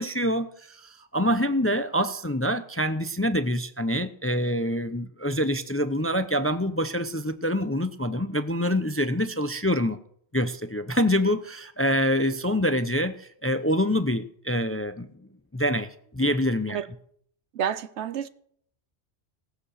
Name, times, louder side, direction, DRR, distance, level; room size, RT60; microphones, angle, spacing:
voice 1, 0.0-10.0 10.3-16.8, equal, 15° left, 0.5 m, -26 dB
voice 2, 17.5-18.3, right 9 dB, 75° right, 1.0 m, -29 dB
18.0 x 8.1 x 6.5 m
omnidirectional pair, 1.2 m